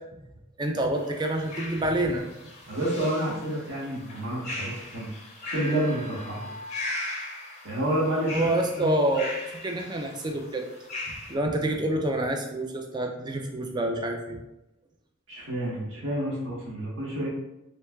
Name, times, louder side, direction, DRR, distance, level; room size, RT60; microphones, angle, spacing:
voice 1, 0.6-2.2 8.3-9.4 9.6-10.7 11.1-14.4, right 1 dB, 20° right, 3 dB, 0.3 m, -27 dB
sound 1, 0.9-11.3, left 2 dB, 30° left, 0.5 m, -39 dB
voice 2, 2.7-5.1 5.4-6.5 7.6-8.5 8.8-9.0 15.3-17.3, right 1 dB, 70° right, -6 dB, 1.2 m, -29 dB
3.2 x 3.1 x 2.2 m, 0.93 s
head